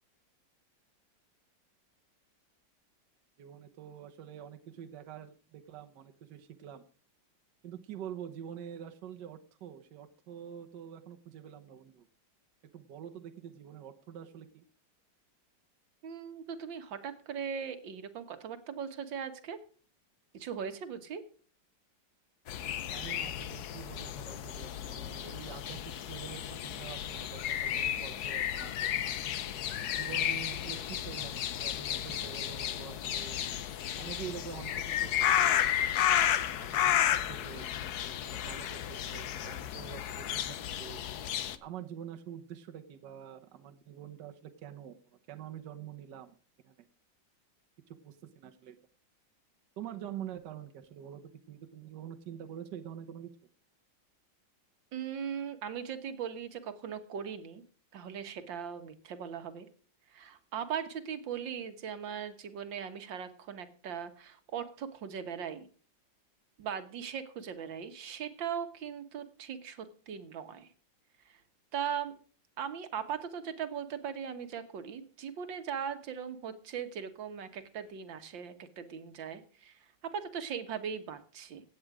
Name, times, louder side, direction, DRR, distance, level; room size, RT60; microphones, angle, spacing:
voice 1, 3.4-6.8 7.6-12.1 12.7-14.6 22.9-28.9 30.0-33.4 34.0-35.6 36.6-36.8 37.3-37.7 38.2-41.0 41.6-46.3 46.6-46.9 48.0-48.8 49.8-51.2 51.5-53.3, right 9 dB, 70° right, 6 dB, 1.6 m, -46 dB
voice 2, 16.0-19.6 20.3-21.2 54.9-57.6 57.9-59.7 60.1-65.7 66.6-70.7 71.3-71.4 71.7-72.2 72.6-81.6, right 7 dB, 90° right, 9 dB, 2.0 m, -39 dB
sound 1, 22.5-41.6, left 10 dB, 65° left, 1.3 m, -33 dB
16.0 x 8.8 x 4.9 m, 0.40 s
omnidirectional pair, 2.0 m